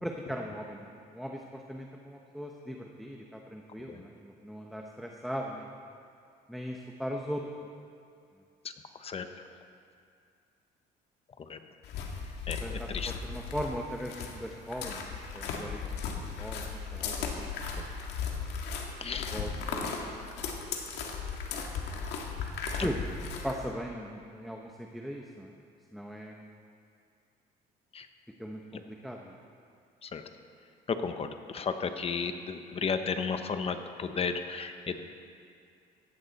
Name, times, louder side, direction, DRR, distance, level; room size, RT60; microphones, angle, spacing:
voice 1, 0.0-5.7 6.5-7.4 12.5-15.8 16.0-17.5 19.3-20.1 22.8-23.0 23.4-25.5 25.9-26.5 28.4-29.3 32.3-32.4, equal, ahead, 1 dB, 1.0 m, -39 dB
sound 1, 11.8-23.7, left 5 dB, 85° left, 1.9 m, -36 dB
voice 2, 12.5-13.1 19.0-19.3 22.8-22.9 27.9-28.1 30.0-30.2 30.9-35.0, left 5 dB, 35° left, 8 dB, 1.0 m, -33 dB
16.5 x 14.5 x 4.2 m, 2.4 s
cardioid pair, 110°, 17 cm